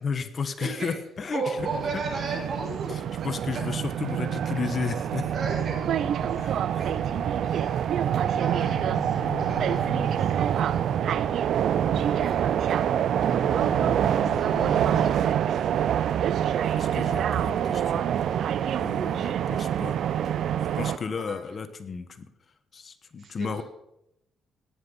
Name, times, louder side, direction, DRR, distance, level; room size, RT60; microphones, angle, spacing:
voice 1, 0.0-1.6 3.2-5.3 6.4-6.8 16.7-18.0 18.8-20.0 20.7-22.3 22.7-23.6, left 5 dB, 45° left, 11 dB, 1.3 m, -33 dB
voice 2, 0.6-0.9 1.3-2.9 3.5-3.6 5.3-7.1 7.5-10.3 10.7-10.8 12.1-12.4 14.4-15.2 20.7-21.6 23.2-23.6, right 3 dB, 50° right, 0 dB, 7.1 m, -36 dB
sound 1, 1.6-21.0, right 9 dB, 70° right, 0.6 m, -26 dB
sound 2, 5.3-8.0 8.3-13.0 13.3-15.1, left 2 dB, 30° left, 7.3 m, -40 dB
17.5 x 10.0 x 5.5 m, 0.82 s
cardioid pair, 90°, 0 cm